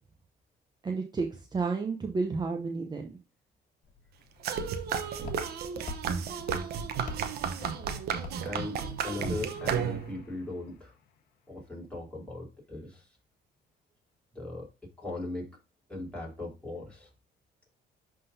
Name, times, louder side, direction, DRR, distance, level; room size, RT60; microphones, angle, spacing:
voice 1, 0.8-3.1, right 4 dB, 25° right, 3 dB, 0.7 m, -31 dB
Walk footsteps, 3.8-10.0, left 4 dB, 50° left, 1.7 m, -46 dB
sound 1, 4.4-10.3, right 7 dB, 70° right, 0.9 m, -33 dB
voice 2, 8.4-10.9 11.5-13.2 14.3-14.7 15.0-15.5 15.9-17.1, left 2 dB, 5° left, -3 dB, 3.3 m, -39 dB
sound 2, 9.2-11.2, left 7 dB, 80° left, 0.9 m, -48 dB
11.0 x 3.8 x 2.7 m, 0.32 s
cardioid pair, 110°, 17 cm